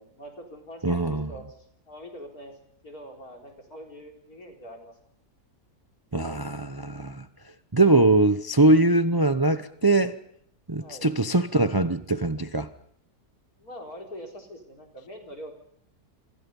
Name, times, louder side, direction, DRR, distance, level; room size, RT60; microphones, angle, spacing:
voice 1, 0.0-2.5 2.8-4.9 10.8-11.1 13.6-15.5, equal, 60° left, 4.7 m, -43 dB
voice 2, 0.8-1.3 6.1-7.3 7.7-10.2 10.7-12.7, right 2 dB, 20° right, 0.6 m, -22 dB
27.5 x 25.0 x 5.5 m
omnidirectional pair, 1.8 m